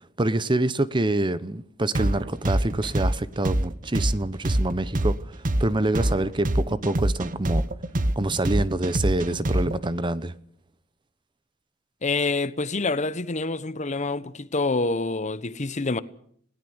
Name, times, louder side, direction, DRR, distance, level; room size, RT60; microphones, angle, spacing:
voice 1, 0.2-5.2 5.6-7.6 8.2-10.3, right 2 dB, 25° right, 0.9 m, -26 dB
sound 1, 1.9-9.9, right 1 dB, 45° right, 1.1 m, -24 dB
voice 2, 12.0-16.0, left 3 dB, 35° left, 1.0 m, -27 dB
20.5 x 17.5 x 8.0 m
head